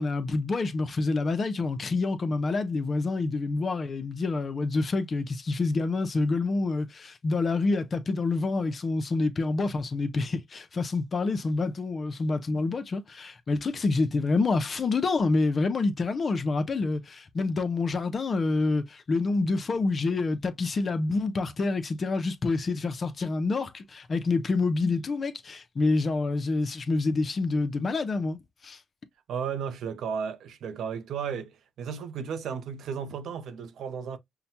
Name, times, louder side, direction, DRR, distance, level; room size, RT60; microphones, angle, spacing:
voice 1, 0.0-28.4 28.6-28.8, left 3 dB, 40° left, 0.6 m, -27 dB
voice 2, 29.3-34.2, right 7 dB, 70° right, 0.6 m, -34 dB
5.6 x 2.2 x 2.7 m
cardioid pair, 90°, 0 cm